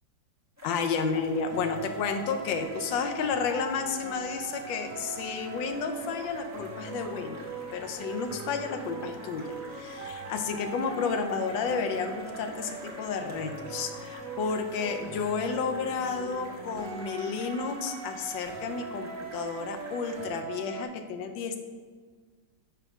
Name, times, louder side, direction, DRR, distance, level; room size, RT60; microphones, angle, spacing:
voice 1, 0.6-7.4 7.7-21.6, left 5 dB, 85° left, 6 dB, 1.4 m, -31 dB
sound 1, 0.6-20.3, equal, 15° right, 0.5 m, -50 dB
sound 2, 1.5-20.9, right 4 dB, 55° right, 1.1 m, -41 dB
5.6 x 3.6 x 5.9 m, 1.5 s
omnidirectional pair, 2.0 m